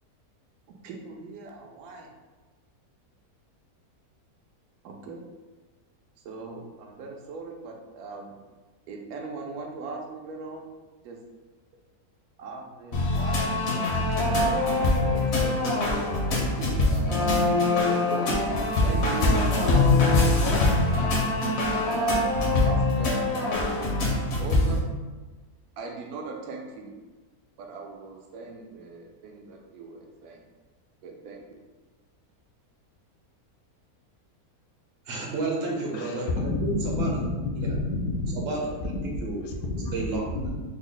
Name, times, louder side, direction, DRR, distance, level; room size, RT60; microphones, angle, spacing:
voice 1, 0.7-2.1 4.8-5.2 6.2-8.4 8.9-10.7 11.0-11.2 12.4-14.1 14.4-17.3 17.7-18.4 18.8-20.0 20.6-23.9 24.4-24.9 25.8-26.9 27.6-30.4 31.0-31.4, right 4 dB, 80° right, 1 dB, 1.0 m, -39 dB
sound 1, 12.9-24.8, left 2 dB, 55° left, 0.8 m, -23 dB
voice 2, 35.1-37.1 37.6-37.8 38.3-38.7 39.2-39.4 39.9-40.2, right 2 dB, 50° right, -2 dB, 0.8 m, -31 dB
voice 3, 35.9-37.3 37.6-38.2 39.4-39.9 40.3-40.5, left 2 dB, 75° left, 1 dB, 1.0 m, -29 dB
3.6 x 2.1 x 3.8 m, 1.2 s
omnidirectional pair, 1.6 m